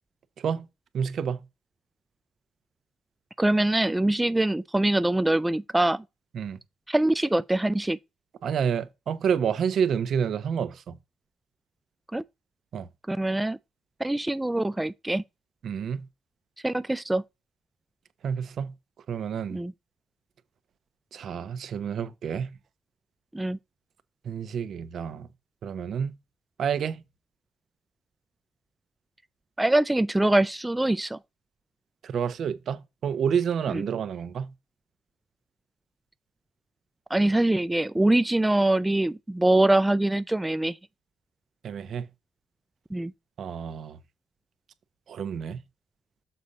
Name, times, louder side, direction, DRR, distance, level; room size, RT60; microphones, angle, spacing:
voice 1, 0.9-1.4 6.3-6.6 8.4-11.0 12.7-12.9 15.6-16.0 18.2-18.7 19.1-19.6 21.1-22.5 24.2-25.3 25.6-26.1 26.6-27.0 32.0-34.5 41.6-42.1 43.4-44.0 45.1-45.6, right 7 dB, 60° right, 0.8 m, -29 dB
voice 2, 3.4-6.0 6.9-8.0 12.1-12.2 13.1-13.6 14.0-15.2 16.6-17.2 19.5-19.7 23.3-23.6 29.6-31.2 33.7-33.8 37.1-40.8 42.9-43.1, right 1 dB, 10° right, 0.3 m, -23 dB
6.8 x 4.1 x 4.8 m
cardioid pair, 90°, 0 cm